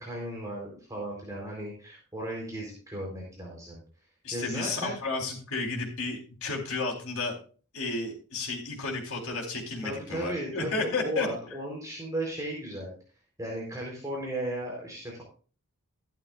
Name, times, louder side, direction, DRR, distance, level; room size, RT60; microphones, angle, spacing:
voice 1, 0.0-3.8 4.3-5.0 9.8-12.9 13.4-15.2, right 1 dB, 15° right, -3 dB, 4.0 m, -35 dB
voice 2, 4.2-7.3 7.7-11.3, left 3 dB, 65° left, 0 dB, 4.1 m, -32 dB
14.5 x 12.0 x 2.5 m, 0.38 s
head